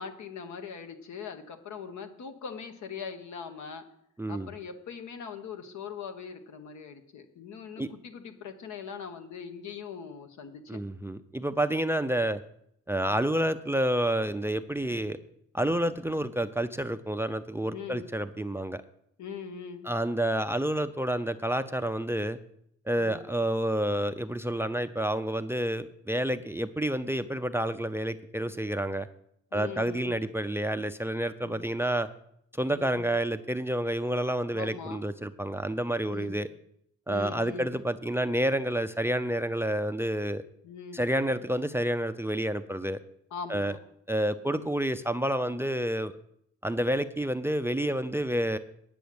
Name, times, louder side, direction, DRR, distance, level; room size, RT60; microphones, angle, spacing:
voice 1, 0.0-3.8 4.3-10.8 17.7-18.1 19.2-19.9 22.9-23.3 29.5-30.2 31.4-31.6 32.7-33.1 34.5-35.0 36.0-36.4 37.1-37.8 40.6-41.1 43.3-43.8 44.5-44.7, left 6 dB, 70° left, 7 dB, 1.4 m, -41 dB
voice 2, 4.2-4.5 7.8-7.9 10.7-12.4 12.9-15.2 15.5-18.8 19.8-22.4 22.9-29.1 29.5-32.1 32.5-36.5 37.1-40.4 40.9-43.0 43.5-43.8 44.1-46.1 46.6-48.6, right 1 dB, 10° right, 13 dB, 0.5 m, -29 dB
9.3 x 6.2 x 8.6 m, 0.73 s
cardioid pair, 90°, 30 cm